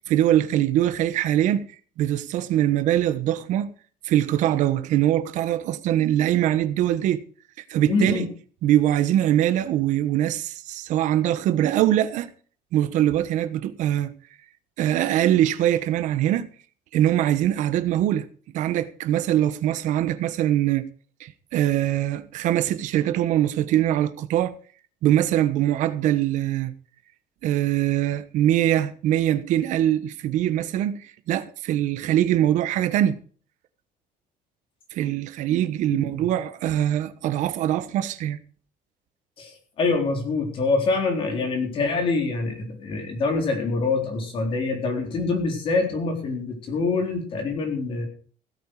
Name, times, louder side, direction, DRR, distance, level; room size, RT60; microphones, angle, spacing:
voice 1, 0.1-1.6 2.0-3.7 4.0-7.2 7.7-8.2 8.6-12.3 12.7-14.1 14.8-16.5 16.9-18.3 18.5-20.8 21.2-24.5 25.0-26.7 27.4-33.2 34.9-38.4, right 12 dB, 60° right, 1.2 m, -22 dB
voice 2, 7.9-8.3 35.9-36.2 39.4-48.1, left 3 dB, 40° left, 4.0 m, -25 dB
16.5 x 8.9 x 4.9 m
cardioid pair, 170°, 15 cm